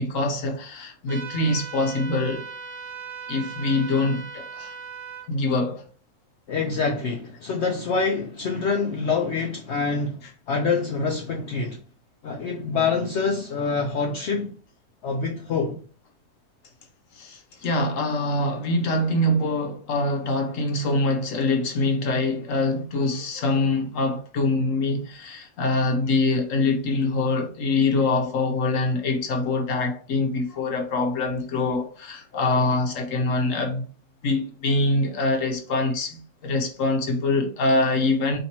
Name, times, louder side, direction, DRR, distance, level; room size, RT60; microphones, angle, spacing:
voice 1, 0.0-2.5 3.3-4.7 5.3-5.9 17.1-33.9 34.2-38.4, left 2 dB, 55° left, 1.1 m, -24 dB
sound 1, 1.1-5.3, right 5 dB, 60° right, 0.6 m, -38 dB
voice 2, 6.5-11.8 12.2-14.5 15.0-15.8, left 4 dB, 80° left, 0.6 m, -26 dB
4.2 x 3.3 x 2.9 m
omnidirectional pair, 1.8 m